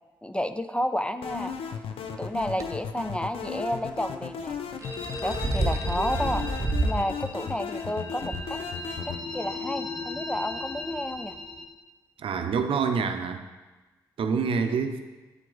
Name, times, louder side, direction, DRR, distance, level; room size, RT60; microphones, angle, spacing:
voice 1, 0.2-1.8 2.2-4.6 5.2-6.4 6.8-8.6 9.0-11.4, equal, 10° left, 10 dB, 0.4 m, -31 dB
sound 1, 1.2-9.2, left 7 dB, 70° left, 0.5 m, -36 dB
sound 2, 2.4-2.6 4.6-7.0 7.5-7.6 8.3-8.4, right 2 dB, 35° right, 0.9 m, -28 dB
sound 3, 4.8-11.7, left 2 dB, 25° left, 1.4 m, -37 dB
voice 2, 12.2-13.4 14.2-15.0, right 5 dB, 65° right, 7 dB, 0.6 m, -26 dB
8.1 x 4.5 x 3.9 m, 1.2 s
supercardioid pair, 50°, 10 cm